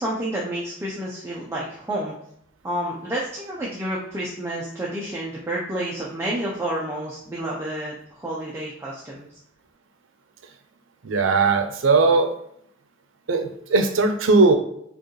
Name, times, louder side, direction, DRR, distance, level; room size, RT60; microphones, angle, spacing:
voice 1, 0.0-2.1 2.6-9.3, right 1 dB, 15° right, -5 dB, 0.6 m, -29 dB
voice 2, 11.0-12.3 13.3-14.5, right 3 dB, 85° right, 7 dB, 0.6 m, -18 dB
4.7 x 2.4 x 3.1 m, 0.72 s
head